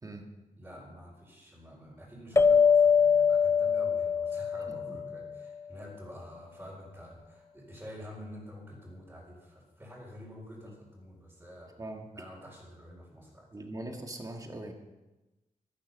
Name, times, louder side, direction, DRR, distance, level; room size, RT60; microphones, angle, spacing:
voice 1, 0.6-11.7 12.1-13.5, equal, 10° right, -8 dB, 4.4 m, -48 dB
sound 1, 2.4-5.3, left 6 dB, 20° left, 0.5 m, -23 dB
voice 2, 4.7-5.0 10.6-10.7 11.8-12.1 13.5-14.7, right 1 dB, 25° right, 2 dB, 2.0 m, -41 dB
14.5 x 13.5 x 5.5 m, 1.1 s
wide cardioid pair, 145°, 14 cm